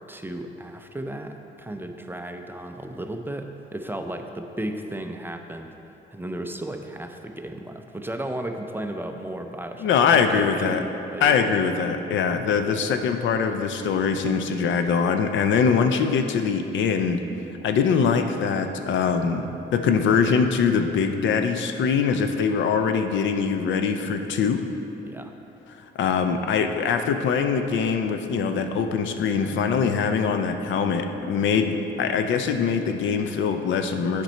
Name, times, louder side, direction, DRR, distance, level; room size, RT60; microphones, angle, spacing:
voice 1, 0.0-5.8 6.1-10.0 10.3-10.8 11.1-11.5 25.0-25.3, right 1 dB, 10° right, 5 dB, 0.5 m, -34 dB
voice 2, 9.8-10.8 11.2-17.2 17.6-24.6 26.0-34.2, left 6 dB, 70° left, 7 dB, 0.5 m, -23 dB
8.0 x 5.2 x 4.4 m, 3.0 s
cardioid pair, 90°, 20 cm